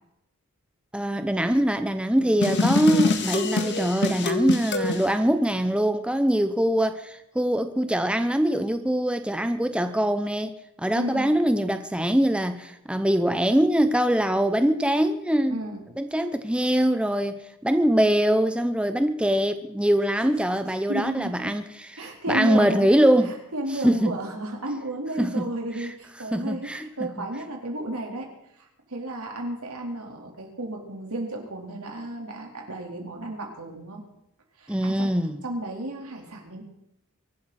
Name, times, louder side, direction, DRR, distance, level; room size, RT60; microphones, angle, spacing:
voice 1, 0.9-15.6 16.0-21.6 22.3-23.3 23.8-24.1 25.2-25.5 26.3-27.3 34.7-35.4, right 1 dB, 5° right, 0.8 m, -23 dB
sound 1, 2.4-5.1, left 3 dB, 55° left, 1.7 m, -25 dB
voice 2, 10.9-11.3 15.5-15.8 20.3-20.4 20.7-21.5 22.0-22.9 23.2-34.0 34.6-35.1 35.4-36.6, right 1 dB, 90° right, 4.1 m, -33 dB
24.0 x 12.5 x 4.3 m
head